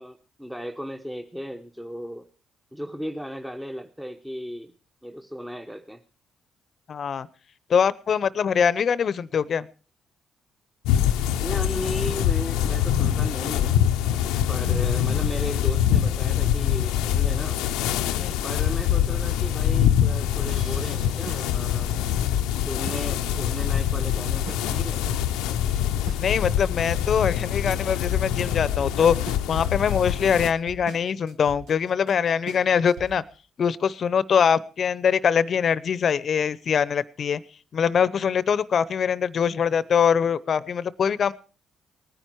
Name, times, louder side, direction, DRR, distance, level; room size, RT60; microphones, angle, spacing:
voice 1, 0.0-2.3 2.7-4.7 5.0-6.0 11.3-13.7 14.5-17.6 18.4-22.0 22.6-25.1, equal, 5° right, 4 dB, 1.1 m, -35 dB
voice 2, 6.9-7.3 7.7-9.7 18.2-18.4 26.2-29.2 29.5-33.2 33.6-37.4 37.7-41.3, left 7 dB, 55° left, 19 dB, 0.8 m, -23 dB
sound 1, 10.8-30.5, left 10 dB, 90° left, 0.7 m, -24 dB
sound 2, 20.5-33.4, right 4 dB, 80° right, 1.4 m, -42 dB
19.0 x 10.0 x 4.7 m, 0.38 s
supercardioid pair, 60°, 0 cm